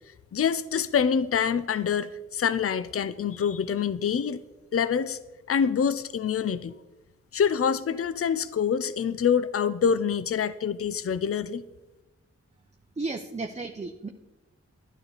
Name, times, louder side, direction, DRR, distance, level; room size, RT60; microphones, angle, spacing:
voice 1, 0.3-4.4 4.7-5.2 5.5-6.7 7.3-11.6, left 7 dB, 50° left, 15 dB, 0.5 m, -26 dB
voice 2, 13.0-14.1, right 3 dB, 25° right, 4 dB, 0.7 m, -33 dB
12.0 x 9.3 x 4.1 m, 1.1 s
cardioid pair, 60°, 29 cm